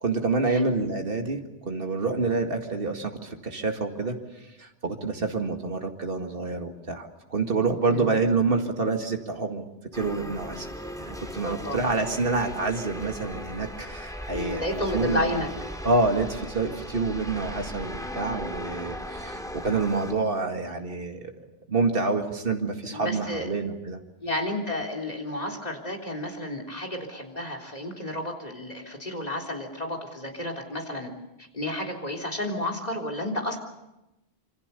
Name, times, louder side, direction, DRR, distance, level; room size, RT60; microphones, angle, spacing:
voice 1, 0.0-4.2 4.6-9.7 9.9-10.7 11.0-14.6 14.9-15.3 15.8-24.0, right 3 dB, 65° right, 4 dB, 2.3 m, -27 dB
sound 1, 9.9-20.1, equal, 5° left, 2.8 m, -37 dB
voice 2, 11.4-11.8 14.3-15.5 22.9-23.5 24.2-31.1 31.5-33.6, left 1 dB, 40° left, 4 dB, 3.7 m, -31 dB
26.5 x 25.5 x 6.9 m, 0.95 s
omnidirectional pair, 1.0 m